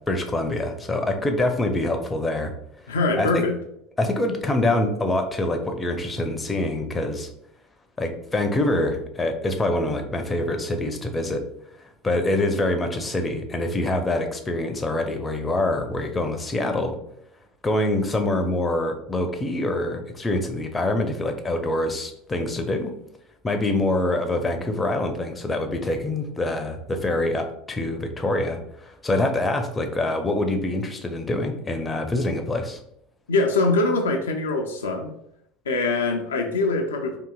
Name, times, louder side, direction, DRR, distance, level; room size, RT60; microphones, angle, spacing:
voice 1, 0.1-2.5 3.2-3.4 4.0-7.3 8.0-11.4 12.0-16.9 17.6-22.9 23.4-32.8, left 2 dB, 20° left, 5 dB, 0.5 m, -25 dB
voice 2, 2.9-3.6 33.3-35.1 35.7-37.2, left 3 dB, 75° left, 3 dB, 0.4 m, -23 dB
3.7 x 2.7 x 2.2 m, 0.75 s
figure-of-eight pair, 70°, 0 cm